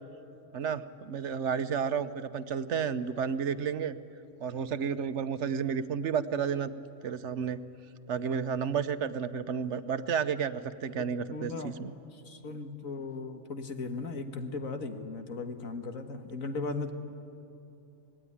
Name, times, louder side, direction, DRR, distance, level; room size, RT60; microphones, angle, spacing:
voice 1, 0.5-4.0 4.4-6.7 7.0-7.6 8.1-11.9, right 7 dB, 60° right, 12 dB, 1.1 m, -31 dB
voice 2, 11.0-11.8 12.1-16.9, left 3 dB, 85° left, 6 dB, 2.0 m, -37 dB
25.5 x 19.5 x 9.9 m, 2.7 s
omnidirectional pair, 1.4 m